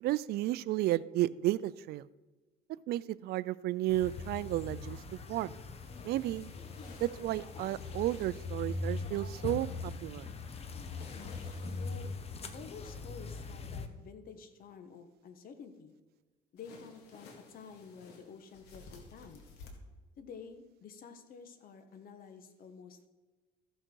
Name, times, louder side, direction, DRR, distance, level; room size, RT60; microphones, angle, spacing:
voice 1, 0.0-2.0 2.9-5.0 5.3-5.5 6.0-6.5 7.0-10.3, right 15 dB, 70° right, 19 dB, 0.4 m, -32 dB
sound 1, 3.9-13.9, left 3 dB, 35° left, 1.0 m, -41 dB
sound 2, 5.7-8.8 10.8-12.2 16.6-19.7, left 4 dB, 85° left, 2.1 m, -55 dB
voice 2, 11.8-12.1 12.5-15.9 16.5-19.5 20.2-23.1, left 5 dB, 60° left, 8 dB, 1.3 m, -50 dB
14.5 x 6.4 x 4.6 m, 1.2 s
cardioid pair, 110°, 17 cm